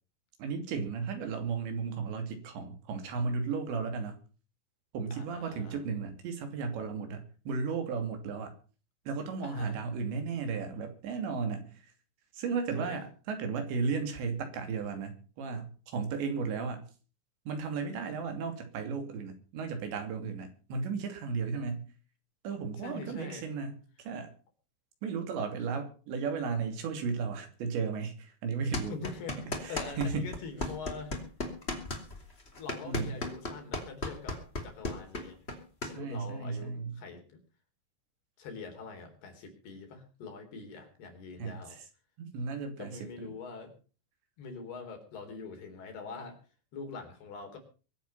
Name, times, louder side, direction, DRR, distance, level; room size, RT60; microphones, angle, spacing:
voice 1, 0.4-4.2 4.9-8.5 9.1-11.9 12.3-16.8 17.5-21.9 22.4-24.3 25.0-29.0 29.6-30.3 32.8-33.1 35.8-37.0 41.4-41.9 42.2-43.0, right 5 dB, 80° right, 6 dB, 5.0 m, -35 dB
voice 2, 5.1-5.8 9.4-9.8 12.8-13.0 22.8-23.5 28.9-31.3 32.6-35.4 35.9-37.4 38.4-41.8 42.8-43.7 44.4-46.4 46.7-47.6, left 4 dB, 65° left, 5 dB, 5.4 m, -44 dB
sound 1, 28.7-30.1 30.3-35.9, left 2 dB, 15° left, 2.4 m, -35 dB
23.5 x 8.6 x 5.6 m, 0.38 s
omnidirectional pair, 5.1 m